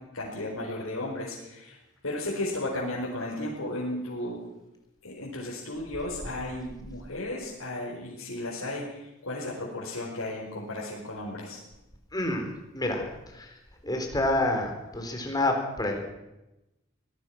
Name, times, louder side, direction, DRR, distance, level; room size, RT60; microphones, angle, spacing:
voice 1, 0.1-1.8 2.0-4.4 5.0-11.6, left 1 dB, 85° left, -5 dB, 5.0 m, -34 dB
voice 2, 12.1-13.0 13.3-13.5 13.8-16.0, left 1 dB, 20° left, 3 dB, 4.1 m, -28 dB
23.5 x 18.5 x 6.1 m, 0.94 s
head